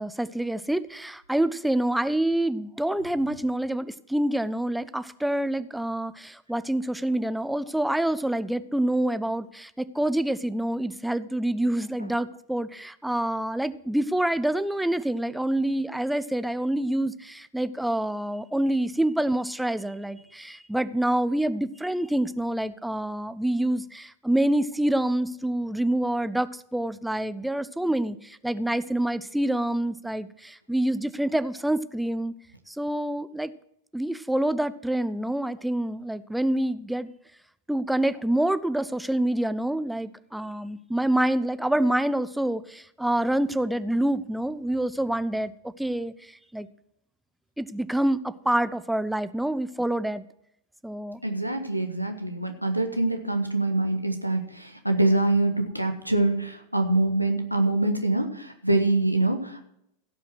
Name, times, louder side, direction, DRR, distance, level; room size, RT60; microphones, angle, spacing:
voice 1, 0.0-32.3 32.7-33.5 33.9-37.1 37.7-46.7 47.6-50.3 50.8-51.2, right 1 dB, 5° right, 14 dB, 0.5 m, -27 dB
voice 2, 51.2-59.6, right 2 dB, 90° right, 5 dB, 1.3 m, -25 dB
16.0 x 5.7 x 6.1 m, 0.75 s
figure-of-eight pair, 90°, 0 cm